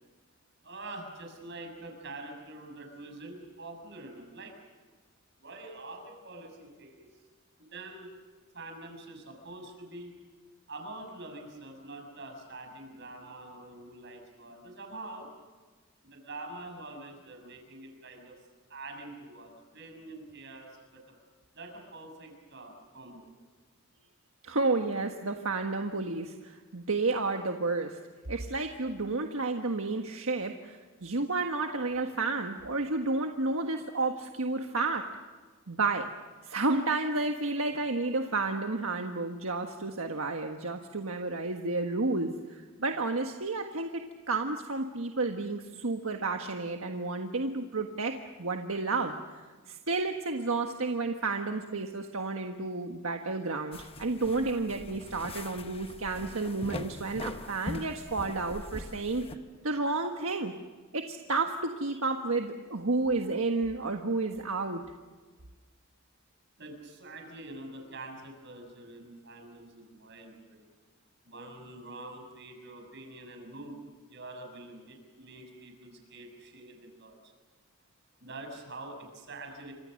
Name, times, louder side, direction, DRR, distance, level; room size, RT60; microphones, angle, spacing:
voice 1, 0.6-4.5 5.4-7.2 7.7-8.1 8.5-10.1 10.7-15.3 16.0-18.4 18.7-21.1 21.5-23.2 66.6-70.7 71.2-73.8 74.1-77.3 78.2-79.7, right 2 dB, 55° right, 3 dB, 6.8 m, -45 dB
voice 2, 24.4-28.0 28.3-35.1 35.7-36.1 36.4-44.0 44.3-59.2 59.6-60.5 60.9-64.8, right 3 dB, 75° right, 4 dB, 1.5 m, -31 dB
sound 1, 53.7-59.4, left 2 dB, 25° left, 1.1 m, -42 dB
29.5 x 26.0 x 6.5 m, 1.4 s
head